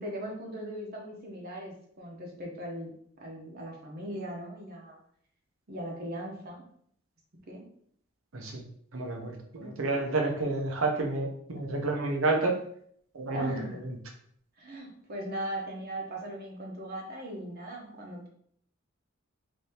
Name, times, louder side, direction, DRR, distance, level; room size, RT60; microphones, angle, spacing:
voice 1, 0.0-2.9 3.2-5.0 5.7-6.6 7.5-7.6 9.6-9.8 13.3-13.8 14.6-18.3, right 1 dB, 50° right, -1 dB, 0.8 m, -39 dB
voice 2, 8.9-12.6 13.1-13.5 13.8-13.9, right 3 dB, 85° right, 2 dB, 0.7 m, -30 dB
3.4 x 2.7 x 2.8 m, 0.65 s
head